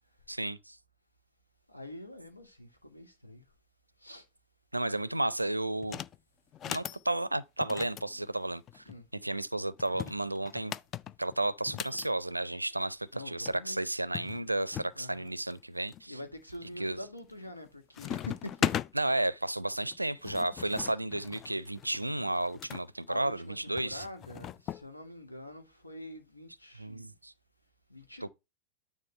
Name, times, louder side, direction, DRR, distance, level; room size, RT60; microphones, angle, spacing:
voice 1, 0.3-0.8 4.7-6.0 6.7-8.8 9.1-10.7 11.2-16.2 16.8-17.0 18.9-24.1 26.7-27.3 28.2-28.3, right 1 dB, 85° right, 0.4 m, -33 dB
voice 2, 1.7-3.4 4.0-4.2 8.9-9.0 13.1-13.8 14.9-15.4 16.1-18.8 21.9-22.0 23.1-27.1 27.9-28.3, left 1 dB, 85° left, 1.4 m, -45 dB
sound 1, 5.8-6.2 6.5-7.0 7.6-9.0 9.8-12.1 13.2-13.3 13.4-13.6 14.1-14.9 15.5-16.0 16.5-16.9 17.2-17.7 17.9-18.9 19.9-22.8 23.8-24.8, left 10 dB, 30° left, 0.3 m, -38 dB
9.4 x 3.6 x 4.4 m
figure-of-eight pair, 90°, 0 cm